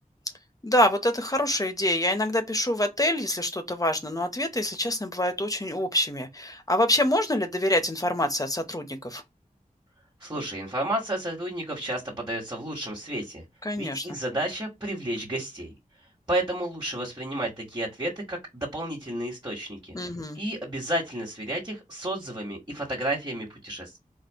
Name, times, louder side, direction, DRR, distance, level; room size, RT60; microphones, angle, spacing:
voice 1, 0.6-9.2 13.6-14.1 19.9-20.4, left 1 dB, 25° left, 0.9 m, -26 dB
voice 2, 10.2-13.4 13.8-15.7 16.3-20.0 20.3-24.0, right 1 dB, 25° right, 1.6 m, -31 dB
4.3 x 2.4 x 3.5 m
wide cardioid pair, 70°, 15 cm